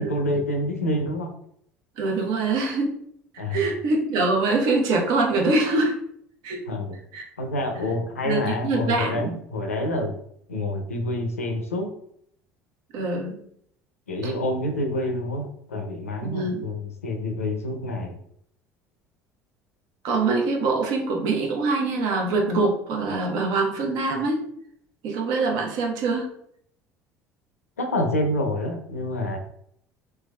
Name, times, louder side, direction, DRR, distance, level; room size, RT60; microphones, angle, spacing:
voice 1, 0.0-1.3 3.4-3.7 6.7-7.0 7.4-10.1 10.5-11.9 14.1-18.2 27.8-29.4, left 1 dB, 85° left, 4 dB, 0.5 m, -27 dB
voice 2, 2.0-2.9 3.3-5.9 6.4-6.6 7.1-7.3 8.2-9.3 12.9-13.4 14.2-14.3 16.2-16.6 20.0-24.4 25.0-26.3, right 3 dB, 60° right, 1 dB, 0.8 m, -24 dB
3.3 x 3.2 x 2.2 m, 0.69 s
figure-of-eight pair, 65°, 8 cm